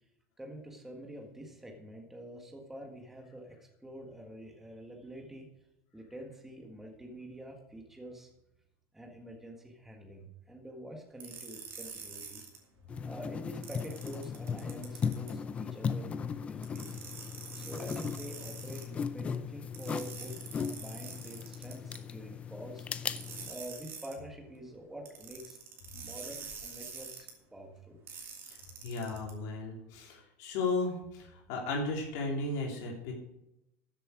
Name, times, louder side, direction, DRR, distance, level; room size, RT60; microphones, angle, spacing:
voice 1, 0.4-5.5 5.9-8.3 8.9-12.4 13.0-17.0 17.5-22.9 23.5-25.6 25.9-28.0, right 1 dB, 5° right, 1 dB, 1.6 m, -47 dB
sound 1, 11.2-12.6 13.6-15.3 16.6-18.9 19.7-22.0 23.2-24.2 25.1-27.3 28.1-29.3, right 6 dB, 35° right, 2.5 m, -46 dB
sound 2, 12.9-23.5, left 6 dB, 20° left, 0.5 m, -37 dB
voice 2, 28.5-33.1, left 3 dB, 55° left, -2 dB, 3.4 m, -35 dB
13.0 x 7.7 x 4.9 m, 0.86 s
cardioid pair, 165°, 7 cm